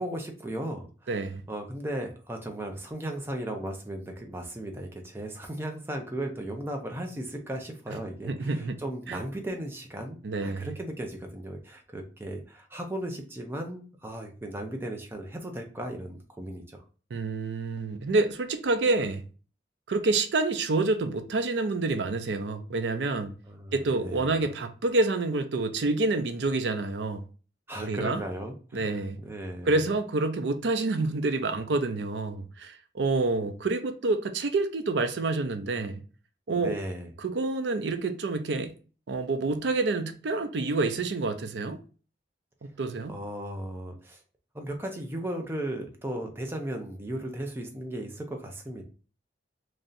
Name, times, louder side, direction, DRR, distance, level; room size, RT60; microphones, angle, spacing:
voice 1, 0.0-1.1 1.5-16.8 23.5-24.4 27.7-29.7 36.5-37.1 43.1-44.2 44.5-48.8, right 1 dB, 15° right, 0.5 m, -36 dB
voice 2, 1.1-1.4 8.3-8.8 9.1-9.2 10.2-10.7 17.1-19.2 19.9-23.3 23.7-27.2 27.8-28.2 28.7-29.2 29.6-36.0 36.5-36.8 37.2-38.7 39.1-41.8 42.8-43.1, right 3 dB, 80° right, 0.5 m, -28 dB
3.2 x 2.6 x 3.9 m
head